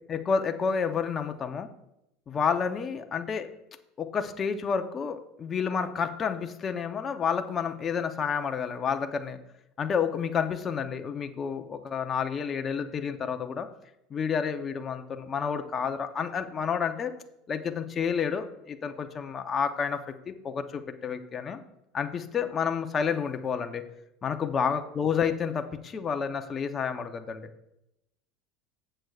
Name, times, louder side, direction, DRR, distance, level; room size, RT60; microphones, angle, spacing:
voice 1, 0.1-1.7 2.3-3.5 4.0-9.4 9.8-13.7 14.1-17.1 17.5-20.0 20.3-21.6 21.9-23.8 24.2-27.5, left 6 dB, 30° left, 7 dB, 0.8 m, -30 dB
14.0 x 7.9 x 2.4 m, 0.85 s
supercardioid pair, 110°, 0 cm